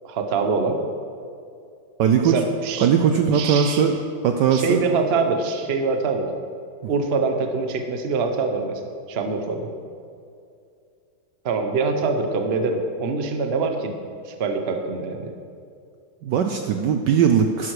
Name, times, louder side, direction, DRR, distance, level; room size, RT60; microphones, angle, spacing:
voice 1, 0.0-0.8 2.2-2.9 3.3-3.9 4.5-6.3 6.9-8.8 9.1-9.7 11.4-13.9 14.2-15.3, right 4 dB, 45° right, 5 dB, 0.9 m, -24 dB
voice 2, 2.0-2.3 2.8-4.0 4.2-4.8 6.8-6.9 16.2-17.7, right 7 dB, 70° right, 5 dB, 1.1 m, -19 dB
12.0 x 11.0 x 4.8 m, 2.4 s
omnidirectional pair, 2.3 m